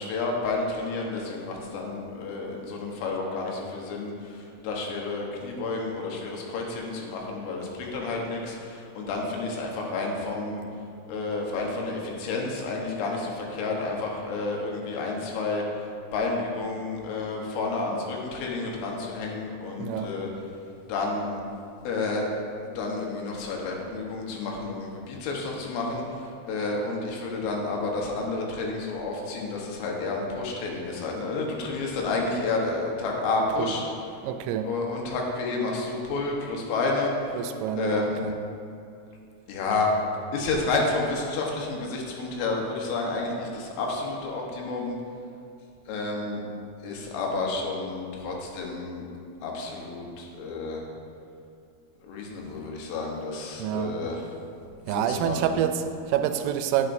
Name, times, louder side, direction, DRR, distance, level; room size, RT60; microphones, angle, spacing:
voice 1, 0.0-10.6 11.1-20.3 20.9-21.4 21.9-22.3 22.6-33.8 34.6-37.4 37.8-38.2 39.5-39.9 40.3-45.0 45.9-46.4 46.8-49.1 49.4-50.8 52.0-54.2 54.9-55.6, left 3 dB, 80° left, -1 dB, 3.7 m, -30 dB
voice 2, 19.8-20.1 33.6-33.7 34.2-34.7 37.3-38.3 53.6-54.0 54.9-56.9, right 9 dB, 85° right, 7 dB, 3.0 m, -27 dB
11.5 x 9.8 x 2.6 m, 2.5 s
omnidirectional pair, 5.6 m